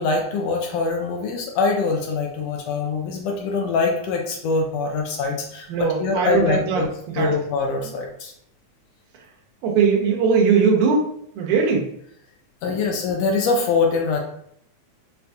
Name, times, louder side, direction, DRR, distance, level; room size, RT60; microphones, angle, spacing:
voice 1, 0.0-6.9 7.2-8.3 12.6-14.2, left 4 dB, 85° left, 1 dB, 1.4 m, -23 dB
voice 2, 5.7-7.4 7.8-8.0 9.1-9.2 9.6-11.9 12.7-12.8, right 5 dB, 90° right, -1 dB, 2.2 m, -20 dB
5.5 x 2.2 x 2.6 m, 0.70 s
omnidirectional pair, 3.4 m